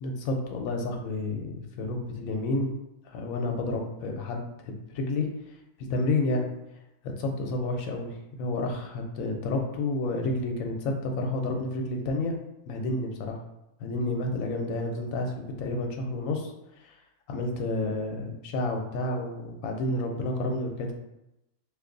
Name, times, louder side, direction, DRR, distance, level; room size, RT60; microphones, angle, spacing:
voice 1, 0.0-2.7 3.1-5.3 5.9-6.5 7.0-8.1 8.4-12.4 12.7-13.4 13.8-16.5 16.8-16.9 17.3-20.9, left 2 dB, 75° left, 2 dB, 1.0 m, -30 dB
2.6 x 2.5 x 3.7 m, 0.89 s
omnidirectional pair, 1.5 m